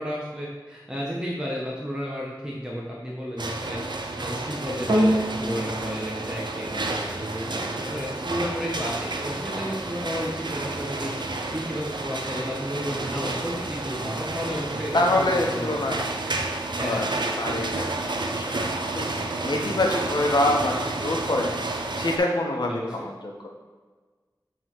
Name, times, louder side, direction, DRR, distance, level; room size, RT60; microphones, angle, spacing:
voice 1, 0.0-3.8 4.2-16.0 16.8-17.1 17.4-17.6 22.7-22.9, equal, 10° right, -4 dB, 1.1 m, -32 dB
sound 1, 3.4-22.2, right 2 dB, 75° right, 0.7 m, -31 dB
sound 2, 4.9-13.5 14.2-14.3, equal, 60° right, 1.3 m, -32 dB
voice 2, 14.9-16.0 16.8-17.1 17.4-18.7 18.9-21.5 22.0-23.5, left 1 dB, 70° left, 0 dB, 1.2 m, -26 dB
7.7 x 3.9 x 4.7 m, 1.4 s
wide cardioid pair, 55°, 8 cm